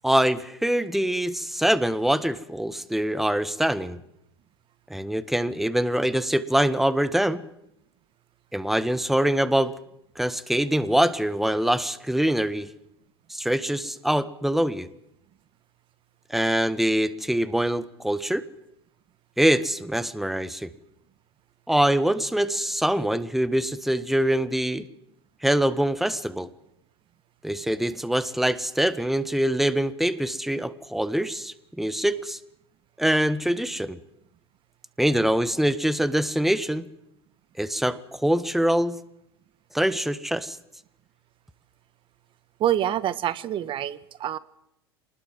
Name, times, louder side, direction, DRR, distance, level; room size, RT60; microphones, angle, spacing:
voice 1, 0.0-4.0 4.9-7.4 8.5-9.7 10.1-12.7 13.3-14.9 16.3-18.4 19.4-20.7 21.7-24.9 25.4-26.5 27.4-32.4 33.0-34.0 35.0-36.9 37.6-39.0 39.7-40.6, right 1 dB, ahead, 14 dB, 1.5 m, -24 dB
voice 2, 42.6-44.4, right 11 dB, 40° right, 17 dB, 1.5 m, -26 dB
26.0 x 20.0 x 7.6 m, 0.79 s
hypercardioid pair, 90°, 13 cm